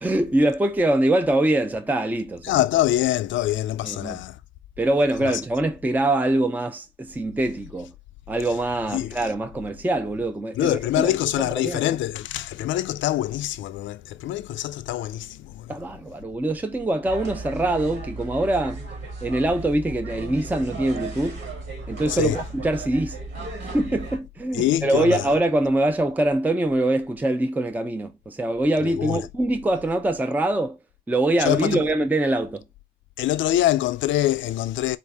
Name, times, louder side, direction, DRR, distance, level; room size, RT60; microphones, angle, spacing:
voice 1, 0.0-2.6 3.8-4.2 4.8-7.9 8.3-12.0 15.7-18.8 19.2-21.4 21.9-23.2 23.7-30.8 31.1-32.6, right 1 dB, 10° right, 0.5 m, -24 dB
voice 2, 2.4-4.4 5.2-5.4 8.9-9.1 10.6-15.8 22.1-22.4 24.5-25.2 28.8-29.2 31.4-31.8 33.2-35.0, left 13 dB, 70° left, 0.4 m, -24 dB
sound 1, 17.0-24.2, right 3 dB, 70° right, 1.9 m, -35 dB
4.0 x 2.7 x 3.4 m
cardioid pair, 90°, 20 cm